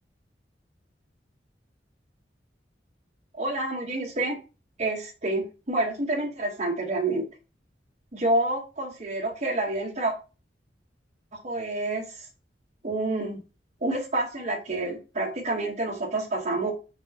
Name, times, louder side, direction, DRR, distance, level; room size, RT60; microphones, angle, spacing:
voice 1, 3.3-4.4 4.8-7.2 8.1-10.1 11.3-12.2 12.8-13.4 13.8-16.7, right 2 dB, 40° right, 1 dB, 1.1 m, -28 dB
4.5 x 4.1 x 2.8 m, 0.32 s
head